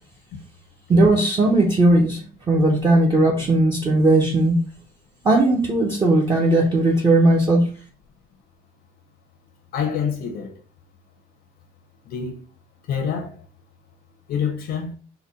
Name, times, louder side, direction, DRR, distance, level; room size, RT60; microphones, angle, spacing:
voice 1, 0.9-2.2 2.5-4.6 5.2-7.7, right 2 dB, 25° right, 0.8 m, -17 dB
voice 2, 9.7-10.5 12.1-12.4 12.9-13.3 14.3-14.9, left 7 dB, 80° left, 0.8 m, -26 dB
4.0 x 2.2 x 4.0 m
cardioid pair, 110°, 17 cm